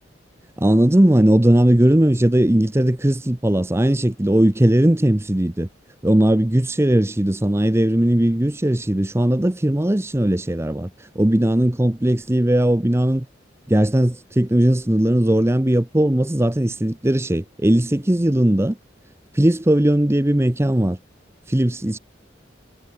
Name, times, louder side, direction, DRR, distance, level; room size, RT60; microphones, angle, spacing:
voice 1, 0.6-5.7 6.0-13.2 13.7-18.7 19.3-21.0 21.5-22.0, right 1 dB, 15° right, 0.7 m, -18 dB
head